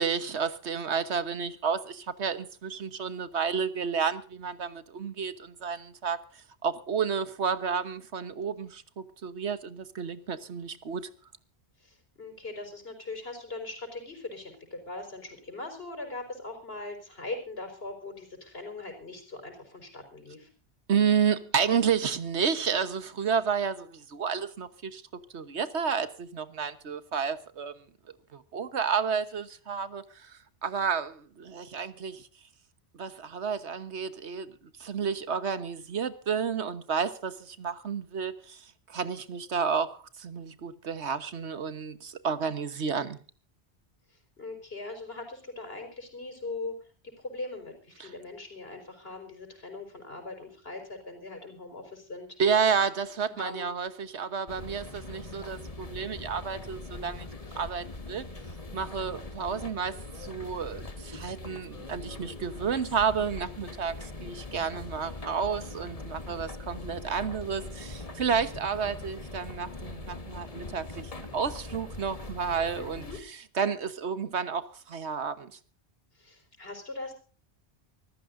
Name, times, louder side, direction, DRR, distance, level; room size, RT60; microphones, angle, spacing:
voice 1, 0.0-6.2 6.6-11.0 20.9-25.0 25.3-27.7 28.3-32.3 32.9-43.2 48.0-48.1 52.4-57.3 57.6-58.2 58.7-75.5, right 6 dB, 85° right, 1.5 m, -31 dB
voice 2, 11.8-20.5 44.4-46.8 47.0-52.3 53.3-53.7 72.7-73.2 76.1-77.1, left 2 dB, 65° left, 5.2 m, -40 dB
sound 1, 54.5-73.2, left 2 dB, 35° left, 1.6 m, -42 dB
25.5 x 14.5 x 2.6 m
omnidirectional pair, 1.1 m